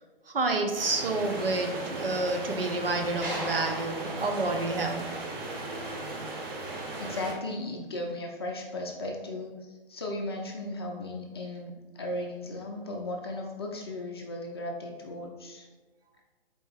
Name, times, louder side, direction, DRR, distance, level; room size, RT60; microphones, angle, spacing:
voice 1, 0.3-5.1, right 2 dB, 75° right, 3 dB, 0.7 m, -29 dB
sound 1, 0.7-7.3, right 2 dB, 25° right, 0.6 m, -37 dB
sound 2, 3.2-5.6, right 1 dB, 5° right, 1.2 m, -39 dB
voice 2, 7.0-15.7, left 1 dB, 25° left, 1 dB, 0.4 m, -36 dB
4.4 x 2.7 x 3.5 m, 1.2 s
figure-of-eight pair, 135°, 29 cm